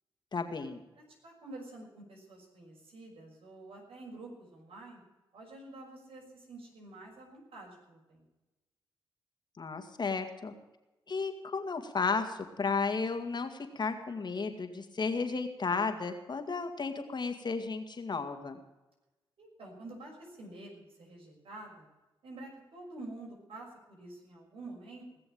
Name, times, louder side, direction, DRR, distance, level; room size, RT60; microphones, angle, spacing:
voice 1, 0.3-0.8 9.6-10.5 11.1-18.6, left 4 dB, 50° left, 6 dB, 2.2 m, -33 dB
voice 2, 0.9-5.0 5.3-8.2 19.4-21.9 22.2-25.1, right 2 dB, 75° right, -1 dB, 6.2 m, -48 dB
19.5 x 6.9 x 8.8 m, 1.0 s
cardioid pair, 55°, 9 cm